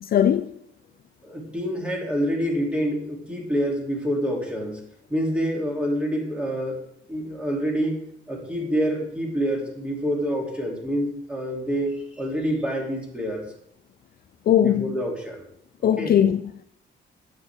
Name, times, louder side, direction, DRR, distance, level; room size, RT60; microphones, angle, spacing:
voice 1, 0.0-0.5 14.5-15.0 15.8-16.4, left 10 dB, 50° left, 0.4 m, -19 dB
voice 2, 1.2-4.8 5.1-6.8 7.1-8.0 8.3-13.4 14.6-15.4 16.0-16.2, equal, 5° right, 2.8 m, -27 dB
9.4 x 8.2 x 3.5 m
cardioid pair, 90°, 20 cm